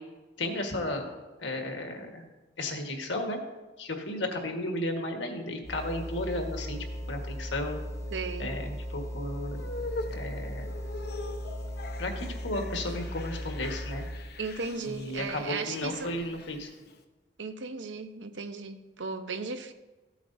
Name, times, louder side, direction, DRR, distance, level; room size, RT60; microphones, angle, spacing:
voice 1, 0.4-1.1 1.4-2.2 2.6-3.4 3.8-7.8 8.4-9.6 10.1-10.7 12.0-14.1 14.8-16.7, left 1 dB, 80° left, 3 dB, 1.5 m, -34 dB
sound 1, 5.6-14.3, equal, 15° left, 0.7 m, -37 dB
voice 2, 8.1-8.5 14.4-16.1 17.4-19.7, right 4 dB, 80° right, 8 dB, 0.8 m, -36 dB
sound 2, 9.6-17.0, left 3 dB, 60° left, 0.8 m, -42 dB
15.0 x 8.0 x 2.7 m, 1.2 s
head